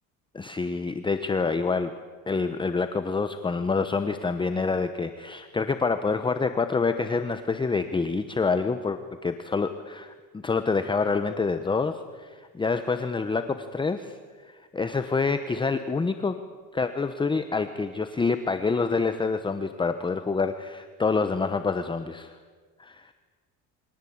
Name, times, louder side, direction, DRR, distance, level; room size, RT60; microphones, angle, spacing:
voice 1, 0.3-1.9 2.3-14.2 14.4-16.4 16.7-22.4 22.8-23.1, left 4 dB, 15° left, 9 dB, 1.0 m, -27 dB
28.5 x 24.0 x 8.7 m, 1.5 s
cardioid pair, 150°, 35 cm